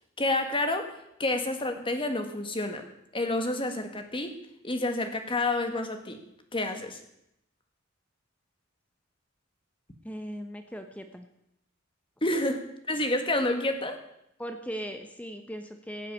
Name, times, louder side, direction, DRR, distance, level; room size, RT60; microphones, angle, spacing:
voice 1, 0.2-2.9 3.1-4.3 4.6-6.2 6.5-7.0 12.2-14.0, left 2 dB, 25° left, 6 dB, 1.7 m, -29 dB
voice 2, 10.0-11.3 14.4-16.1, equal, 5° left, 6 dB, 1.0 m, -38 dB
16.0 x 7.5 x 8.6 m, 0.81 s
head